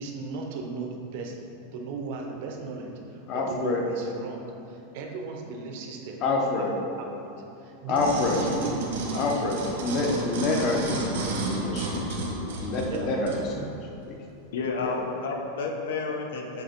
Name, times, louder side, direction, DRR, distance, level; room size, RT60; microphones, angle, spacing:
voice 1, 0.0-6.2 6.6-6.7 7.0-7.3 7.6-9.5 9.8-10.0 12.7-13.7 14.1-14.2, right 4 dB, 50° right, 1 dB, 0.7 m, -37 dB
voice 2, 3.3-3.8 6.2-6.7 7.9-8.4 9.1-11.0 11.5-13.3 13.6-13.7 14.8-14.9, left 3 dB, 30° left, 1 dB, 0.7 m, -27 dB
sound 1, 7.9-13.4 14.0-14.1, right 2 dB, 80° right, 1.2 m, -31 dB
voice 3, 14.5-16.6, left 4 dB, 80° left, 2 dB, 0.8 m, -30 dB
7.8 x 3.0 x 4.4 m, 2.7 s
supercardioid pair, 175°, 0 cm